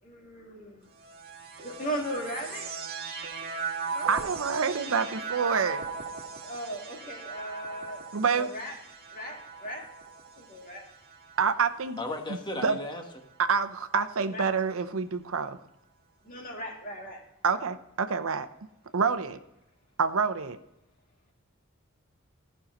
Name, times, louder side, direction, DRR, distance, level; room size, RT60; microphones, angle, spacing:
voice 1, 0.0-0.9 1.6-2.7 3.5-3.6 3.9-4.1 6.4-8.0 8.3-8.7 9.1-9.8 10.4-10.8 14.3-14.5 16.2-17.2, equal, 40° left, 0 dB, 2.3 m, -37 dB
sound 1, 1.0-12.4 13.2-14.0, right 5 dB, 50° right, 1.5 m, -39 dB
voice 2, 4.1-5.9 8.1-8.5 11.4-12.0 12.3-12.8 13.4-15.6 17.4-18.5 18.9-19.4 20.0-20.6, right 5 dB, 75° right, 11 dB, 0.7 m, -27 dB
voice 3, 12.0-13.0, left 1 dB, 20° left, 4 dB, 1.2 m, -35 dB
14.0 x 5.6 x 3.8 m, 0.87 s
head